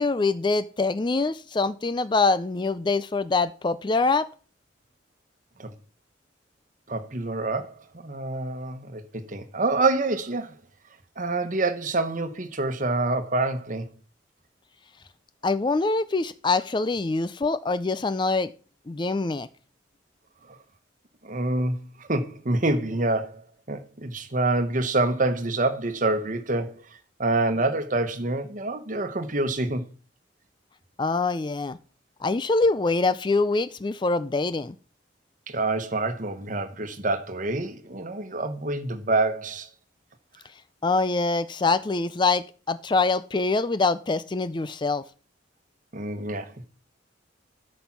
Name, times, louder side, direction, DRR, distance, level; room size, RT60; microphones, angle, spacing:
voice 1, 0.0-4.3 15.4-18.5 18.9-19.5 31.0-31.8 32.2-34.8 40.8-45.0, left 3 dB, 25° left, 0.4 m, -24 dB
voice 2, 6.9-7.7 8.0-10.5 11.2-13.9 21.2-21.7 22.0-23.4 23.7-26.7 27.2-29.8 35.5-39.7 45.9-46.6, right 2 dB, 45° right, 1.2 m, -26 dB
13.0 x 5.3 x 6.0 m
head